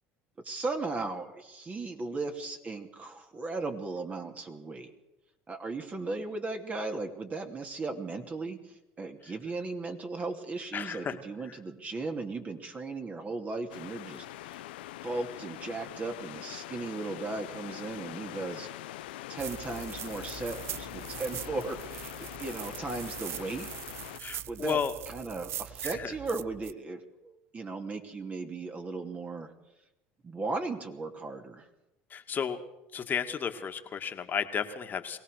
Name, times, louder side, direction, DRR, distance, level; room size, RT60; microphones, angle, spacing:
voice 1, 0.4-4.9 5.5-14.6 15.0-18.7 19.3-23.7 24.5-24.8 25.1-29.5 30.2-31.7, right 3 dB, 25° right, 4 dB, 2.7 m, -36 dB
voice 2, 10.7-11.2 24.2-24.9 25.8-26.1 32.1-32.6 32.9-35.2, left 7 dB, 35° left, 6 dB, 2.1 m, -33 dB
sound 1, 13.7-24.2, left 15 dB, 85° left, 0.7 m, -43 dB
sound 2, 19.4-26.7, right 12 dB, 50° right, 0.6 m, -42 dB
22.5 x 17.5 x 6.6 m, 0.94 s
supercardioid pair, 90°, 5 cm